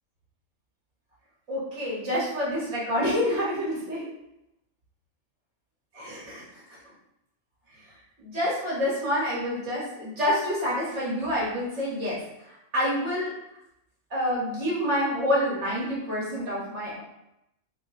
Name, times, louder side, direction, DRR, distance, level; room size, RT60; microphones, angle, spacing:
voice 1, 1.5-4.1 5.9-6.6 8.2-12.2 12.5-13.3 14.1-17.0, equal, 65° right, -7 dB, 1.7 m, -28 dB
3.5 x 2.2 x 3.7 m, 0.84 s
omnidirectional pair, 1.3 m